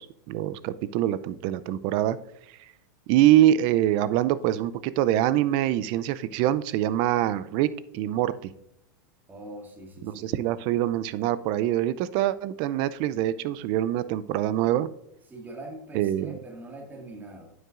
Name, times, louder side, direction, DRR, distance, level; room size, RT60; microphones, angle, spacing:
voice 1, 0.0-2.2 3.1-7.7 7.9-8.5 10.0-14.9 15.9-16.3, right 13 dB, 50° right, 16 dB, 0.5 m, -24 dB
voice 2, 9.3-10.3 15.3-17.5, right 1 dB, 15° right, 2 dB, 2.0 m, -42 dB
9.6 x 8.0 x 2.5 m, 0.81 s
hypercardioid pair, 115°, 11 cm